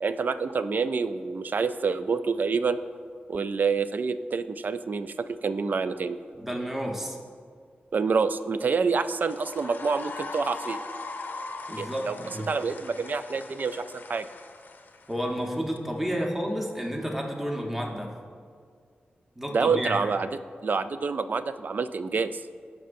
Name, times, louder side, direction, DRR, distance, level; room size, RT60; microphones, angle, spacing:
voice 1, 0.0-2.8 3.3-6.2 7.9-10.8 11.8-12.2 12.5-14.3 19.5-20.3 20.6-22.4, right 5 dB, 55° right, 12 dB, 0.3 m, -27 dB
voice 2, 6.4-7.2 11.7-12.5 15.1-18.1 19.4-20.1, equal, 10° right, 0 dB, 1.0 m, -31 dB
sound 1, 9.2-15.5, left 3 dB, 60° left, 0.6 m, -40 dB
15.0 x 5.4 x 2.6 m, 2.1 s
wide cardioid pair, 110°, 4 cm